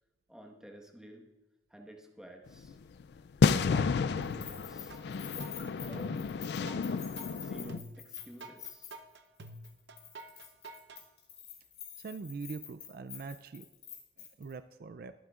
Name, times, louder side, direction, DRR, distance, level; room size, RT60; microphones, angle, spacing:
voice 1, 0.3-1.2 1.7-2.8 3.7-5.0 5.8-6.2 6.5-6.8 7.4-8.9, right 1 dB, 5° right, 0 dB, 1.3 m, -50 dB
sound 1, 2.5-2.7 3.0-3.1 3.4-7.8, left 5 dB, 70° left, 0.3 m, -31 dB
Keys jangling, 4.2-9.2 9.4-9.7 10.0-14.5, left 9 dB, 40° left, 4.1 m, -47 dB
sound 2, 4.2-5.0 5.4-11.0, right 2 dB, 85° right, 0.8 m, -49 dB
voice 2, 12.0-13.7 14.2-15.1, right 4 dB, 55° right, 11 dB, 0.4 m, -43 dB
22.5 x 9.3 x 2.4 m, 1.1 s
head